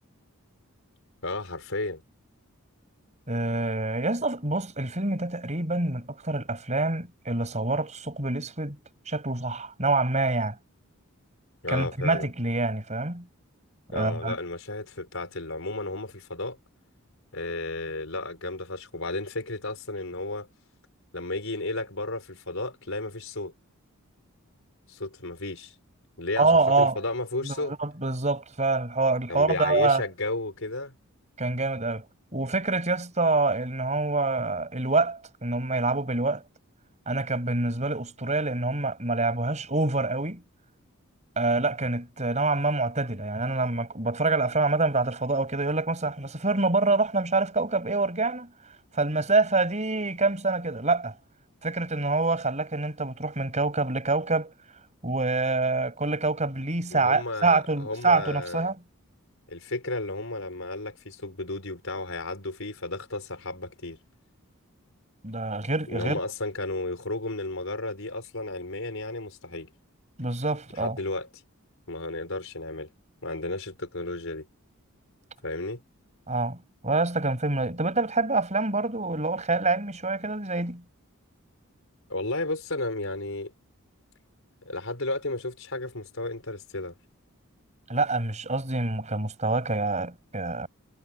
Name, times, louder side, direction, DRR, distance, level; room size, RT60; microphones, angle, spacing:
voice 1, 1.2-2.0 11.6-12.3 13.9-16.6 17.3-20.5 21.1-23.5 24.9-25.7 26.2-27.7 29.3-30.9 56.9-58.7 59.5-64.0 65.9-69.7 70.8-71.3 71.9-72.9 73.2-74.5 75.4-75.8 82.1-83.5 84.6-86.9, left 2 dB, 65° left, 5.1 m, -33 dB
voice 2, 3.3-8.8 9.1-10.6 11.7-13.3 13.9-14.3 26.4-27.0 27.4-30.0 31.4-32.0 32.3-36.4 37.1-40.4 41.4-48.5 48.9-51.1 51.6-54.5 55.0-58.8 65.2-66.2 70.2-71.0 76.3-76.6 76.8-80.8 87.9-90.7, right 3 dB, 30° right, 6.0 m, -26 dB
head